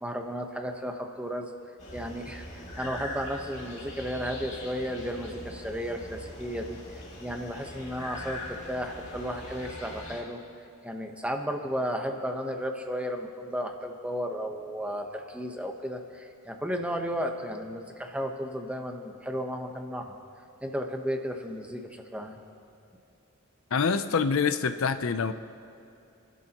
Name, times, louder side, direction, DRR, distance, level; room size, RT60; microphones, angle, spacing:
voice 1, 0.0-1.5 1.9-6.8 7.2-10.4 10.8-20.2 20.6-22.4, equal, 5° right, 3 dB, 1.0 m, -34 dB
sound 1, 1.8-10.2, left 1 dB, 35° left, 2.3 m, -42 dB
voice 2, 23.7-25.3, left 5 dB, 70° left, 10 dB, 0.5 m, -26 dB
29.0 x 12.0 x 3.0 m, 2.8 s
head